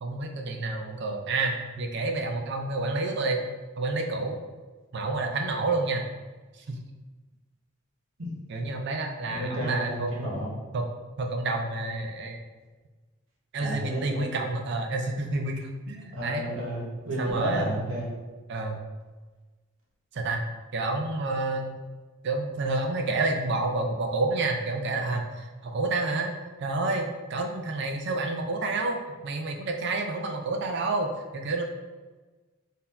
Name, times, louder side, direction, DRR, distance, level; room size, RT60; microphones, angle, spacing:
voice 1, 0.0-3.4 3.8-4.4 4.9-6.0 6.6-6.8 8.5-10.1 10.7-10.9 11.2-12.4 13.5-16.4 17.2-17.8 18.5-18.8 20.1-20.4 20.7-21.8 22.2-26.3 26.6-31.7, right 2 dB, 60° right, 4 dB, 0.5 m, -29 dB
voice 2, 9.3-10.5 13.6-14.3 16.1-18.1, equal, 80° right, -3 dB, 1.3 m, -31 dB
4.0 x 2.7 x 4.3 m, 1.3 s
head